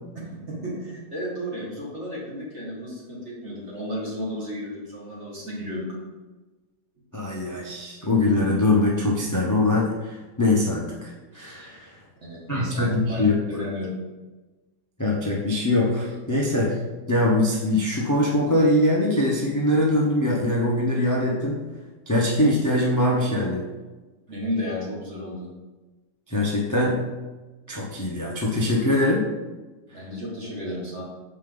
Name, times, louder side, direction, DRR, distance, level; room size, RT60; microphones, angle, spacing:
voice 1, 0.3-6.0 12.3-13.2 13.5-13.9 24.3-25.5 29.9-31.0, equal, 40° right, -4 dB, 2.0 m, -33 dB
voice 2, 7.1-11.9 12.5-13.3 15.0-16.7 17.1-21.6 22.1-23.7 26.3-27.0 27.7-29.3, left 1 dB, 20° left, -4 dB, 0.5 m, -22 dB
6.6 x 4.9 x 3.9 m, 1.2 s
omnidirectional pair, 1.9 m